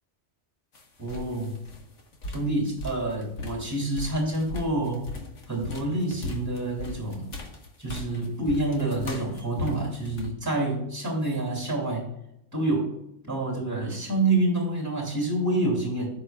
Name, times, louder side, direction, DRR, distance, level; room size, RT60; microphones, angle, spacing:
sound 1, 0.7-10.3, left 2 dB, 85° left, 1.6 m, -38 dB
voice 1, 1.0-1.5 2.3-5.1 5.5-7.3 7.8-12.1 12.5-12.9 13.2-16.1, right 2 dB, 15° right, -1 dB, 2.7 m, -27 dB
15.0 x 5.2 x 2.3 m, 0.81 s
omnidirectional pair, 1.2 m